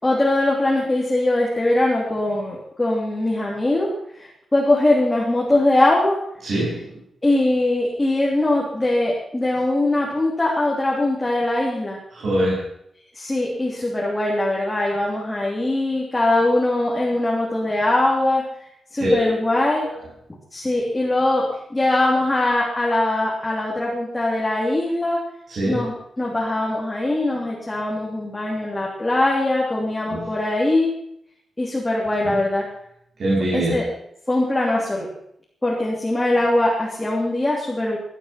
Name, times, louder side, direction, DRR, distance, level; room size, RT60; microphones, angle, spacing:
voice 1, 0.0-6.2 7.2-12.0 13.1-18.4 18.9-19.9 20.5-25.2 25.6-30.9 31.6-32.7 33.5-33.9 34.3-35.1 35.6-38.0, left 2 dB, 15° left, -4 dB, 3.2 m, -21 dB
voice 2, 6.4-6.9 12.1-12.7 19.0-19.9 25.5-25.8 30.1-30.3 32.2-32.4 33.2-33.9, right 1 dB, 50° right, -5 dB, 7.0 m, -23 dB
18.5 x 11.5 x 5.9 m, 0.72 s
wide cardioid pair, 165°, 0 cm